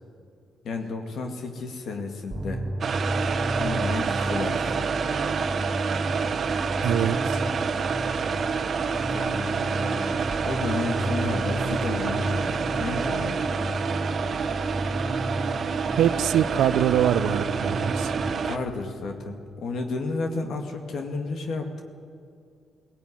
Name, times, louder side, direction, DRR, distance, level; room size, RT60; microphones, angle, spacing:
voice 1, 0.6-2.6 3.6-4.8 9.1-13.7 18.2-21.8, left 3 dB, 65° left, 4 dB, 2.3 m, -32 dB
sound 1, 2.3-18.3, right 1 dB, 25° right, 1.5 m, -32 dB
sound 2, 2.8-18.6, right 5 dB, 50° right, 1.3 m, -28 dB
voice 2, 6.8-7.4 16.0-18.2, right 10 dB, 80° right, 13 dB, 0.9 m, -24 dB
17.5 x 17.0 x 9.9 m, 2.3 s
cardioid pair, 80°, 0 cm